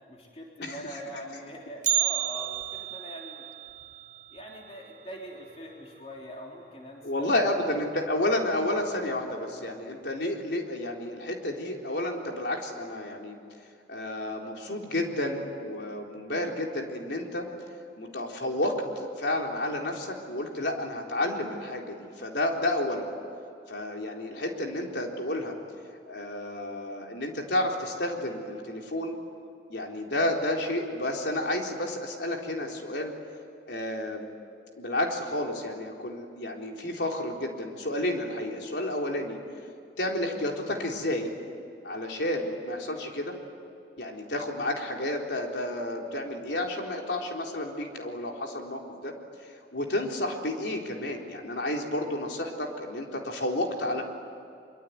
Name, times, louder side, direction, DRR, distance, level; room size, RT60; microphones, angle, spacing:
voice 1, 0.0-3.5 4.3-7.1, equal, 35° left, -1 dB, 3.6 m, -42 dB
Bell, 1.8-5.9 6.2-6.3 6.8-6.9 7.7-7.8 8.5-8.8 9.2-9.3, right 14 dB, 45° right, 0.8 m, -32 dB
voice 2, 7.0-13.4 13.9-17.5 18.0-23.1 23.7-25.6 26.1-29.2 29.7-33.1 33.7-34.3 34.8-39.4 40.0-41.3 41.8-43.4 44.0-49.1 49.4-54.0, left 1 dB, 80° left, 1 dB, 3.9 m, -31 dB
24.5 x 24.0 x 9.5 m, 2.6 s
head